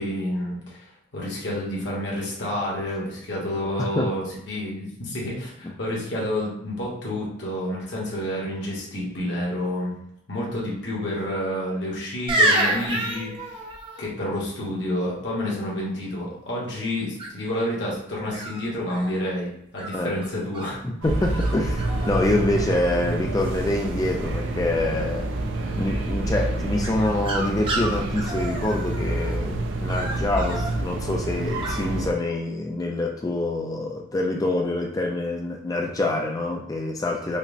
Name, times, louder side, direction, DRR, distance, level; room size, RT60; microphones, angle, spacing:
voice 1, 0.0-9.9 10.3-13.6 14.0-20.8 21.2-21.4, left 1 dB, 65° left, -4 dB, 1.1 m, -29 dB
sound 1, 12.3-14.0 17.2-17.6 18.3-19.2 19.8-20.7 21.4-21.5 21.8-22.3 22.5-23.1 26.8-29.3 29.9-30.7 31.6-31.8, right 1 dB, 25° right, 0.6 m, -28 dB
voice 2, 20.8-25.3 25.8-37.4, left 2 dB, 20° left, 1 dB, 0.3 m, -26 dB
sound 2, 21.0-32.1, right 2 dB, 75° right, 0.4 m, -28 dB
5.2 x 2.1 x 2.5 m, 0.77 s
head